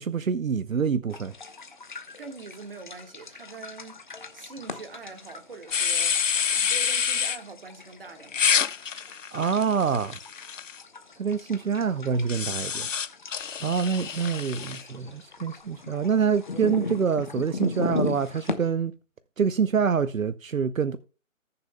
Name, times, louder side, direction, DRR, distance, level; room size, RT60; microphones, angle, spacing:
voice 1, 0.0-1.3 9.3-10.2 11.2-12.9 13.6-18.9 19.4-21.0, right 6 dB, 75° right, 0.8 m, -26 dB
sound 1, 1.1-18.5, left 4 dB, 35° left, 1.0 m, -38 dB
voice 2, 2.1-6.2 6.5-8.5, right 4 dB, 40° right, 1.6 m, -44 dB
sound 2, 5.7-7.4 8.3-10.8 12.3-14.8, left 7 dB, 65° left, 0.6 m, -27 dB
19.5 x 6.9 x 2.2 m
figure-of-eight pair, 155°, 41 cm